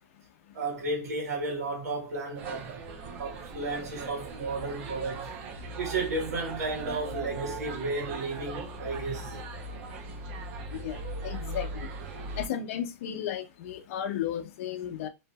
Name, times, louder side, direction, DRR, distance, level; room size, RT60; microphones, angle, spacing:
voice 1, 0.5-2.8 3.2-5.3 5.8-9.3, right 3 dB, 80° right, 1.3 m, -33 dB
sound 1, 2.4-12.5, right 2 dB, 55° right, 0.7 m, -39 dB
voice 2, 11.2-11.7 12.4-15.1, left 10 dB, 60° left, 0.6 m, -34 dB
2.7 x 2.5 x 2.3 m
hypercardioid pair, 130°, 8 cm